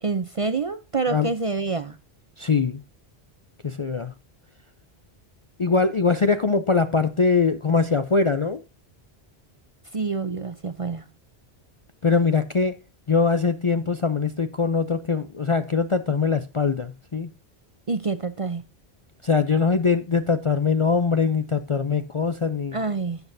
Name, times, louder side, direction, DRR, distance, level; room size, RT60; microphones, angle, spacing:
voice 1, 0.0-2.0 9.9-11.0 17.9-18.6 22.7-23.2, right 4 dB, 40° right, 0.5 m, -27 dB
voice 2, 2.4-2.8 3.6-4.1 5.6-8.6 12.0-12.8 13.1-17.3 19.2-22.8, left 4 dB, 40° left, 0.4 m, -22 dB
12.0 x 8.2 x 2.6 m
omnidirectional pair, 1.1 m